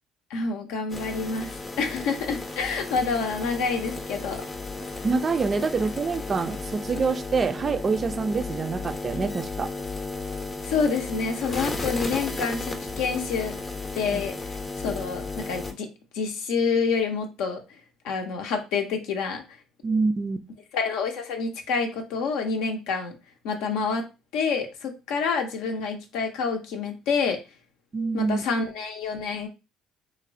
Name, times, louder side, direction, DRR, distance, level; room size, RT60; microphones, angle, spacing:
voice 1, 0.3-4.4 10.6-13.5 13.9-14.3 14.8-15.9 16.1-17.6 18.0-19.4 20.7-23.2 23.4-24.1 24.3-27.4 28.1-29.5, left 5 dB, 70° left, 0.5 m, -27 dB
sound 1, 0.9-15.7, left 3 dB, 30° left, 0.6 m, -34 dB
voice 2, 5.0-9.7 14.1-14.2 19.8-20.4 27.9-28.4, right 4 dB, 35° right, 0.3 m, -26 dB
3.1 x 2.0 x 2.5 m
hypercardioid pair, 55°, 0 cm